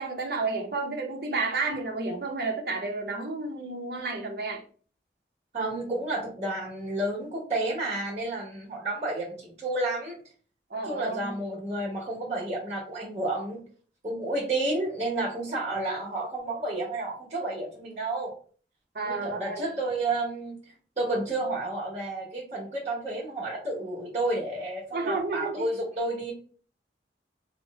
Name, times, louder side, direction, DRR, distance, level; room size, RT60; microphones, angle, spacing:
voice 1, 0.0-4.6 10.7-11.3 18.9-19.6 24.9-25.7, right 3 dB, 60° right, 0.7 m, -31 dB
voice 2, 5.5-10.2 10.8-13.6 14.0-18.3 19.0-26.3, right 2 dB, 35° right, 1.2 m, -31 dB
2.9 x 2.1 x 3.5 m
head